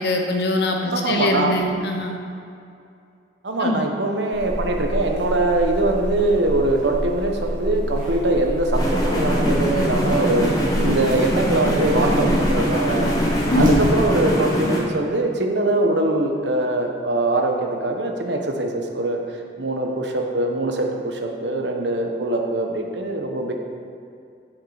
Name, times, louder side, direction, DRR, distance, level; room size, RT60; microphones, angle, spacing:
voice 1, 0.0-2.2 3.6-3.9 13.5-13.9, left 1 dB, 65° left, 3 dB, 0.9 m, -23 dB
voice 2, 0.9-1.6 3.4-10.5 10.8-13.2 13.5-19.2 19.6-23.5, right 2 dB, 80° right, 3 dB, 1.0 m, -22 dB
Buzz, 4.3-14.3, equal, 45° right, 2.0 m, -26 dB
sound 1, 8.7-14.8, equal, 20° left, 1.3 m, -23 dB
7.6 x 7.4 x 4.9 m, 2.5 s
head